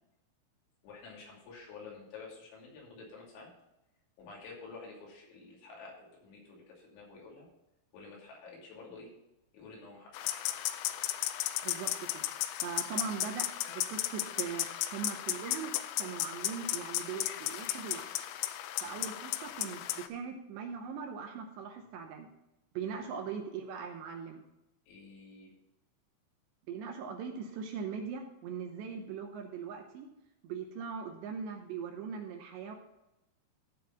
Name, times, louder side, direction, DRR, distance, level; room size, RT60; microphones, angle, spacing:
voice 1, 0.8-3.5 4.2-7.5 7.9-9.1 9.5-10.6 18.8-19.1 22.8-23.0 24.9-25.5, left 4 dB, 70° left, -3 dB, 4.9 m, -50 dB
sound 1, 10.1-20.1, left 14 dB, 90° left, 3.1 m, -35 dB
voice 2, 11.6-12.2 12.6-18.1 18.8-22.3 22.7-24.4 26.7-30.1 30.4-32.8, right 6 dB, 75° right, 4 dB, 2.8 m, -40 dB
14.0 x 4.8 x 5.7 m, 0.91 s
omnidirectional pair, 5.6 m